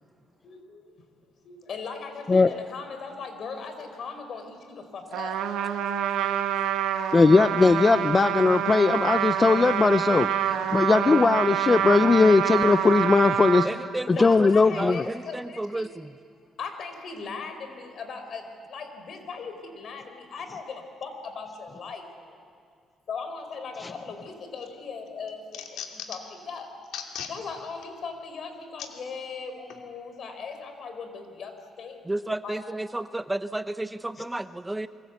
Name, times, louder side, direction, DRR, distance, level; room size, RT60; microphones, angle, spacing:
voice 1, 0.4-0.8 1.4-5.4 14.1-15.9 16.6-22.5 23.1-26.7 27.3-32.0 32.4-32.6, left 5 dB, 60° left, 7 dB, 4.9 m, -38 dB
Trumpet, 5.1-13.7, right 9 dB, 90° right, 1.9 m, -26 dB
voice 2, 7.1-10.3 10.7-13.7 14.1-15.0, left 4 dB, 30° left, 11 dB, 0.7 m, -19 dB
voice 3, 13.6-16.1 32.1-34.9, right 1 dB, 10° right, 11 dB, 0.8 m, -32 dB
sound 1, 24.3-24.7 25.1-26.4 26.8-27.3 27.8-27.9 28.8-28.9 29.7-29.8, left 9 dB, 85° left, 2.7 m, -38 dB
28.5 x 24.0 x 8.3 m, 2.2 s
cardioid pair, 90°, 0 cm